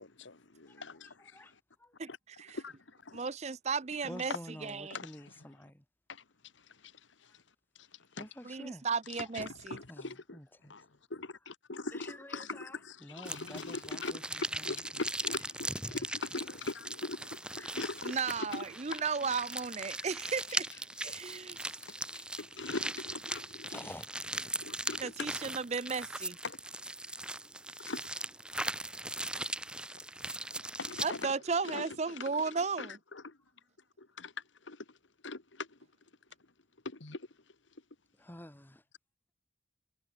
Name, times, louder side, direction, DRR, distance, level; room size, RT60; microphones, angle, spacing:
voice 1, 0.0-1.6 2.1-2.2 2.5-3.3 4.9-5.1 6.1-6.2 6.6-7.4 7.8-8.3 9.2-10.4 10.6-12.7 13.1-18.2 18.5-18.6 18.9-19.0 21.9-23.8 24.6-25.3 26.4-26.6 27.9-28.0 30.6-31.3 31.6-33.4 34.0-34.3 34.6-35.0 35.2-35.8 36.9-37.3, left 3 dB, 80° left, 1.7 m, -42 dB
voice 2, 0.7-1.5 1.8-1.9 4.0-5.8 7.3-7.4 8.2-8.9 9.9-10.7 11.9-14.8 15.9-16.0 17.5-17.8 19.9-20.1 20.7-21.9 23.7-24.1 24.8-24.9 38.1-38.8, left 1 dB, 10° left, 1.7 m, -50 dB
voice 3, 2.0-2.6 3.1-4.3 4.6-5.0 8.4-9.8 18.0-20.7 21.0-21.8 25.0-26.4 31.0-33.0, right 5 dB, 35° right, 0.6 m, -35 dB
sound 1, 13.2-31.2, right 1 dB, 5° right, 1.6 m, -39 dB
head